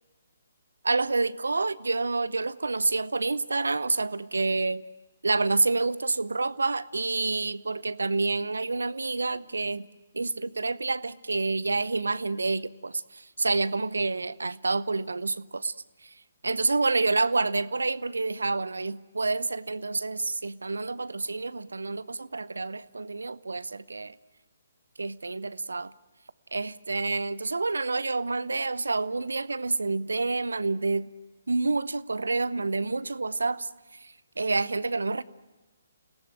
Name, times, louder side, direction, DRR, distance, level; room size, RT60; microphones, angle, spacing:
voice 1, 0.8-4.8 5.2-9.9 10.1-15.7 16.4-24.1 25.0-25.9 26.5-31.1 31.5-33.7 34.0-35.2, right 3 dB, 75° right, 18 dB, 0.8 m, -28 dB
29.0 x 18.0 x 9.1 m, 1.1 s
figure-of-eight pair, 135°, 0 cm